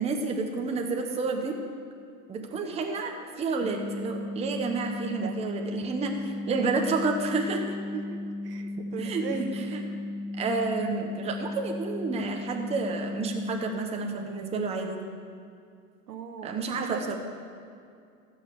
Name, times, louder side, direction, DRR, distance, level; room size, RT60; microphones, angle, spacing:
voice 1, 0.0-1.6 2.3-3.1 3.4-6.1 6.5-7.7 9.0-9.8 10.4-15.0 16.4-17.2, right 3 dB, 15° right, 2 dB, 0.9 m, -30 dB
sound 1, 3.6-13.6, left 2 dB, 30° right, 1.5 m, -36 dB
voice 2, 6.5-6.8 7.9-8.2 8.4-9.7 16.1-17.2, right 6 dB, 90° right, 5 dB, 1.4 m, -37 dB
14.5 x 6.6 x 6.6 m, 2.3 s
hypercardioid pair, 130°, 47 cm